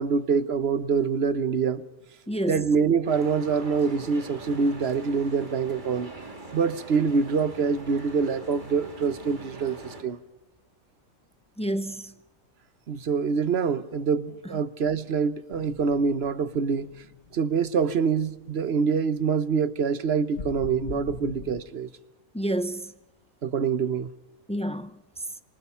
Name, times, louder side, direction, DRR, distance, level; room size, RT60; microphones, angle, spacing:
voice 1, 0.0-1.8 2.5-6.1 6.5-10.2 12.9-16.9 17.3-21.9 23.4-24.1, right 5 dB, 50° right, 1.1 m, -25 dB
voice 2, 2.3-2.6 11.6-12.1 22.3-22.9 24.5-25.0, right 1 dB, 10° left, 0.4 m, -29 dB
sound 1, 3.0-10.0, right 2 dB, 35° right, 2.6 m, -42 dB
sound 2, 15.5-18.3 18.6-18.8 20.4-21.6, left 5 dB, 60° left, 1.8 m, -41 dB
27.0 x 24.0 x 5.7 m
omnidirectional pair, 1.5 m